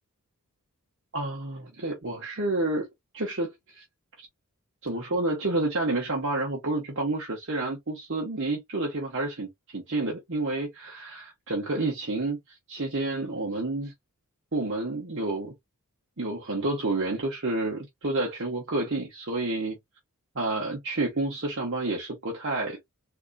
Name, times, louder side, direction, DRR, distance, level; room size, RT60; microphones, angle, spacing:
voice 1, 1.1-2.9 3.1-3.8 4.2-4.3 4.8-13.9 14.5-15.5 16.2-19.8 20.3-22.8, right 2 dB, 55° right, 1.1 m, -29 dB
3.8 x 2.9 x 2.2 m
head